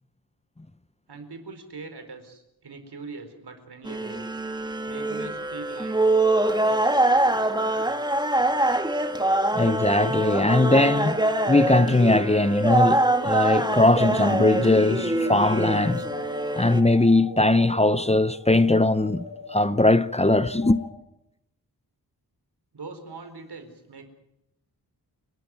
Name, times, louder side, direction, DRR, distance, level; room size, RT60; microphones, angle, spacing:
voice 1, 1.1-4.2 4.8-6.0 6.4-8.1 22.7-24.0, right 4 dB, 90° right, 4.5 m, -42 dB
sound 1, 3.9-16.8, right 2 dB, 10° right, 1.7 m, -24 dB
sound 2, 9.0-20.9, left 4 dB, 80° left, 3.0 m, -38 dB
voice 2, 9.5-11.2 11.5-16.0 16.6-20.8, left 2 dB, 15° left, 0.8 m, -20 dB
29.0 x 12.5 x 9.4 m
wide cardioid pair, 110°, 38 cm